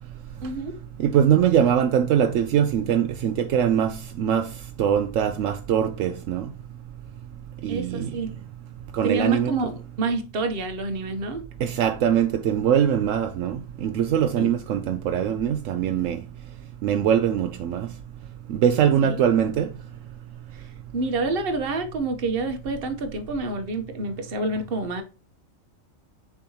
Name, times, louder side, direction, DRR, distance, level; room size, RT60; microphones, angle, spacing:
voice 1, 0.4-0.8 7.7-8.3 9.0-11.5 14.4-14.5 19.0-19.2 20.9-25.0, right 3 dB, 45° right, 1.1 m, -28 dB
voice 2, 1.0-4.5 4.8-6.5 7.6-8.1 8.9-9.5 11.6-16.2 16.8-17.9 18.5-19.7, right 9 dB, 75° right, 1.0 m, -22 dB
6.9 x 4.7 x 2.8 m
omnidirectional pair, 1.4 m